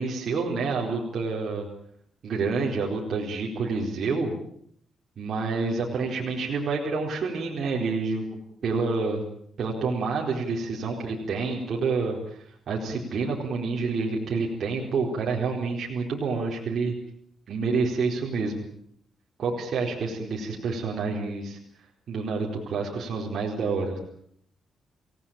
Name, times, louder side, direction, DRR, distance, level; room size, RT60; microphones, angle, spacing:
voice 1, 0.0-1.7 2.2-4.4 5.2-9.2 9.6-16.9 17.5-18.6 19.4-21.6 22.1-24.0, right 4 dB, 55° right, -2 dB, 4.4 m, -28 dB
28.0 x 17.5 x 9.0 m, 0.67 s
cardioid pair, 135°, 0 cm